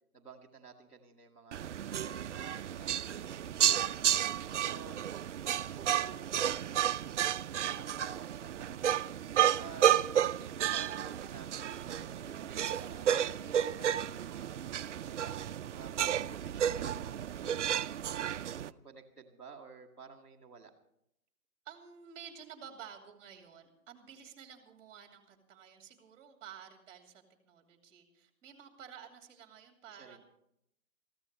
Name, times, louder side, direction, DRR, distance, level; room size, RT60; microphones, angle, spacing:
voice 1, 0.1-2.5 2.7-4.0 4.5-5.3 5.7-7.3 7.7-9.2 9.5-9.9 10.2-17.6 18.0-20.7 29.9-30.2, right 5 dB, 5° left, -5 dB, 0.7 m, -53 dB
sound 1, 1.5-18.7, right 10 dB, 55° right, 0.5 m, -32 dB
voice 2, 21.6-30.2, right 8 dB, 20° right, 4 dB, 2.5 m, -52 dB
22.0 x 14.5 x 3.3 m, 0.76 s
hypercardioid pair, 165°, 44 cm